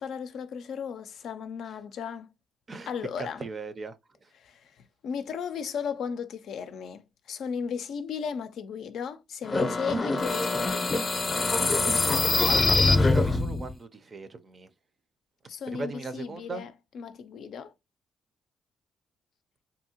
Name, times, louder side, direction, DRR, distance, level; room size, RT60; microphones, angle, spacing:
voice 1, 0.0-2.3 2.9-3.4 4.3-10.9 15.5-17.7, left 6 dB, 70° left, 0.4 m, -36 dB
voice 2, 3.2-3.9 12.2-14.7 15.7-16.7, right 3 dB, 35° right, 0.5 m, -37 dB
sound 1, 9.4-13.7, left 3 dB, 35° left, 0.6 m, -24 dB
2.7 x 2.7 x 2.8 m
cardioid pair, 90°, 0 cm